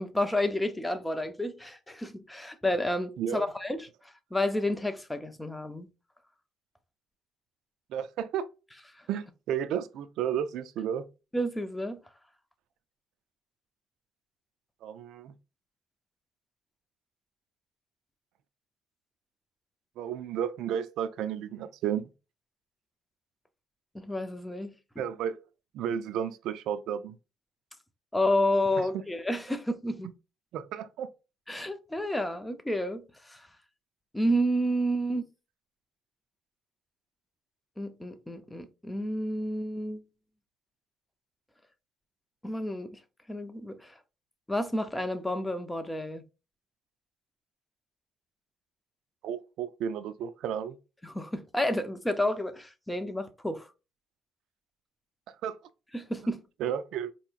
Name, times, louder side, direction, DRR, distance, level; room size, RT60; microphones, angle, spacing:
voice 1, 0.0-3.9 4.3-5.9 11.3-12.0 23.9-24.7 28.1-30.1 31.5-33.5 34.1-35.2 37.8-40.0 42.4-43.0 43.3-43.9 44.5-46.2 51.0-53.7 55.9-56.4, left 1 dB, 10° left, 0.5 m, -30 dB
voice 2, 3.2-3.5 7.9-8.5 9.1-11.0 14.8-15.3 20.0-22.1 25.0-25.4 25.7-27.2 28.9-29.0 30.5-31.1 49.2-50.8 55.4-55.6 56.6-57.1, right 9 dB, 70° right, 0.4 m, -32 dB
4.4 x 2.8 x 2.4 m
cardioid pair, 115°, 0 cm